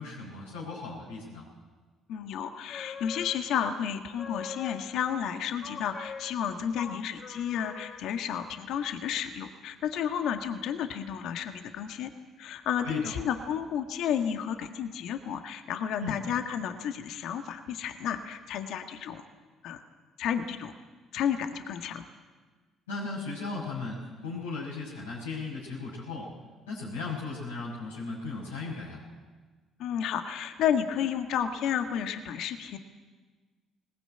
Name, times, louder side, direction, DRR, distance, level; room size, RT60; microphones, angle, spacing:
voice 1, 0.0-1.4 12.8-13.1 16.0-16.2 22.9-26.3 26.7-29.0, left 3 dB, 90° left, -8 dB, 6.1 m, -36 dB
voice 2, 2.1-12.1 12.4-19.2 19.6-19.8 20.2-20.7 21.1-22.0 29.8-32.8, left 8 dB, 65° left, 7 dB, 1.6 m, -32 dB
sound 1, 2.5-3.7 4.0-5.1 5.6-8.2, left 6 dB, 50° left, 2.6 m, -43 dB
21.0 x 19.5 x 9.0 m, 1.4 s
hypercardioid pair, 55°, 0 cm